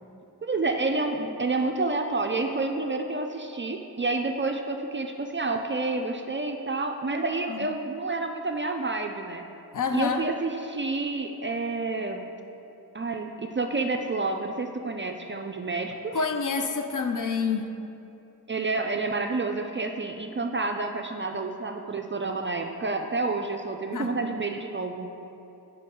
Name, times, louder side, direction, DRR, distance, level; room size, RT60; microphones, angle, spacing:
voice 1, 0.4-9.4 9.9-12.3 12.9-16.2 18.5-25.2, right 3 dB, 30° right, 4 dB, 0.4 m, -29 dB
voice 2, 9.7-10.2 16.1-17.7 23.9-24.1, left 5 dB, 50° left, 6 dB, 0.5 m, -28 dB
5.5 x 4.2 x 5.3 m, 2.8 s
cardioid pair, 55°, 41 cm